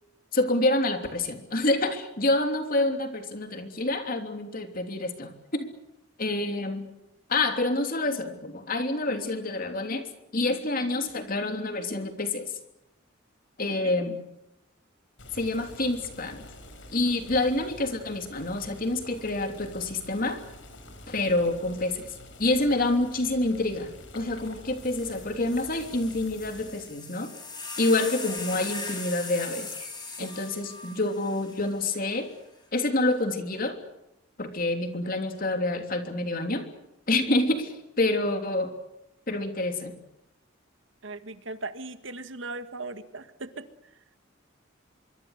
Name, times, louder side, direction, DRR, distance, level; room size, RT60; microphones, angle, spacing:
voice 1, 0.3-5.7 6.2-6.9 7.3-10.1 10.3-12.4 13.6-14.1 15.3-16.4 16.9-20.4 21.1-22.1 22.4-27.3 27.8-29.7 30.2-32.3 32.7-33.8 34.4-36.7 37.1-38.7 39.3-39.9, left 2 dB, 45° left, 6 dB, 3.2 m, -27 dB
voice 2, 13.8-14.2 28.0-28.1 30.2-30.5 41.0-43.7, right 3 dB, 75° right, 10 dB, 1.8 m, -39 dB
Boiling, 15.2-27.0, left 1 dB, 75° left, 5.1 m, -47 dB
sound 1, 24.4-24.5 24.8-32.2 33.1-33.5, left 3 dB, 20° left, 7.7 m, -40 dB
25.0 x 24.0 x 6.6 m, 0.87 s
head